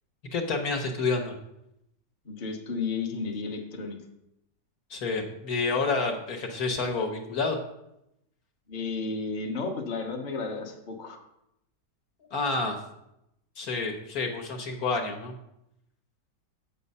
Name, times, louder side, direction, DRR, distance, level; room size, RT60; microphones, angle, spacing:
voice 1, 0.3-1.4 4.9-7.6 12.3-12.8 13.6-15.3, left 3 dB, 60° left, 3 dB, 1.5 m, -29 dB
voice 2, 2.2-4.0 8.7-11.2, left 4 dB, 35° left, 2 dB, 0.9 m, -33 dB
8.2 x 6.8 x 5.5 m, 0.84 s
omnidirectional pair, 1.9 m